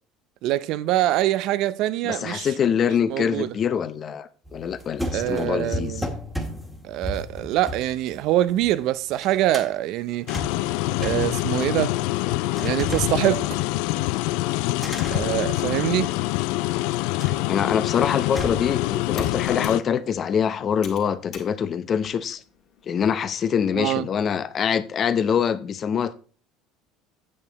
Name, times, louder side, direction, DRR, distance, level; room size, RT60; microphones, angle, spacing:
voice 1, 0.4-2.5 3.1-3.5 5.1-6.1 6.8-10.3 11.0-12.0 12.6-13.6 15.1-16.1 23.7-24.1, right 14 dB, 65° right, 0.5 m, -24 dB
voice 2, 2.0-6.1 17.5-22.4 22.9-26.1, left 7 dB, 40° left, 0.7 m, -24 dB
sound 1, 4.5-8.8 9.1-9.7 10.1-12.1 12.5-14.0 14.8-16.2 17.1-17.6 18.3-19.5, equal, ahead, 1.5 m, -35 dB
sound 2, 10.3-19.8, left 19 dB, 80° left, 0.3 m, -25 dB
Computer keyboard, 17.7-22.9, left 7 dB, 55° left, 2.1 m, -48 dB
8.6 x 6.8 x 4.0 m
cardioid pair, 120°, 0 cm